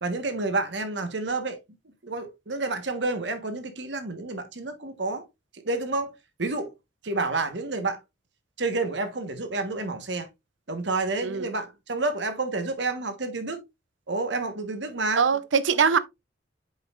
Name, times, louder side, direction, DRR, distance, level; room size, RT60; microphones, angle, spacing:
voice 1, 0.0-1.6 2.0-5.2 5.6-6.1 6.4-6.7 7.0-8.0 8.6-10.3 10.7-13.6 14.1-15.2, right 3 dB, 70° right, 1.3 m, -29 dB
voice 2, 15.2-16.0, right 6 dB, 90° right, 0.6 m, -22 dB
7.8 x 5.5 x 2.5 m
head